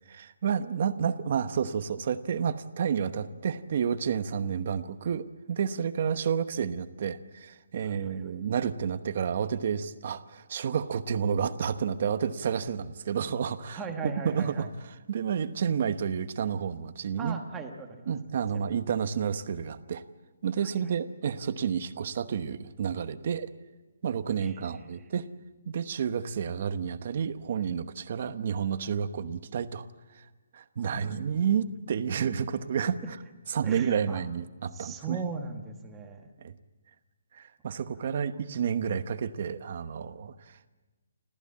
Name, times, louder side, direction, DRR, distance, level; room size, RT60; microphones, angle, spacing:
voice 1, 0.1-14.7 15.1-17.4 18.1-20.0 20.4-23.5 24.0-25.3 25.7-29.9 30.2-30.3 30.5-33.2 33.5-35.2 36.4-36.5 37.3-40.7, right 7 dB, 40° right, 12 dB, 1.0 m, -30 dB
voice 2, 7.8-8.2 13.7-14.7 17.2-18.1 18.5-18.6 24.4-24.8 30.8-31.2 33.6-34.2 34.7-36.3 38.0-38.6, right 4 dB, 10° right, 3 dB, 1.3 m, -39 dB
29.0 x 14.5 x 8.5 m, 1.2 s
hypercardioid pair, 175°, 0 cm